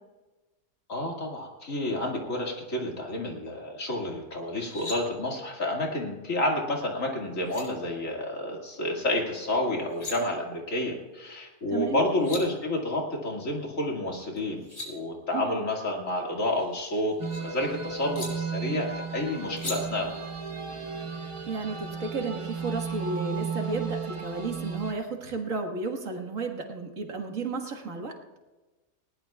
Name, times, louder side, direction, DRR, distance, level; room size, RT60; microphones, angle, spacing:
voice 1, 0.9-20.3, left 1 dB, 75° left, 0 dB, 2.6 m, -30 dB
sound 1, 4.5-5.0 7.0-7.1 7.4-7.6 9.7-10.1 11.8-11.9 12.1-12.4 14.4-14.9 16.4-17.4 18.1-18.3 19.6-19.8, left 2 dB, 35° left, 5.3 m, -39 dB
voice 2, 11.7-12.0 15.3-15.5 21.5-28.1, right 3 dB, 75° right, 2 dB, 2.1 m, -33 dB
sound 2, 17.2-24.9, right 6 dB, 25° right, 1.1 m, -34 dB
20.0 x 18.0 x 2.4 m, 1.2 s
omnidirectional pair, 1.4 m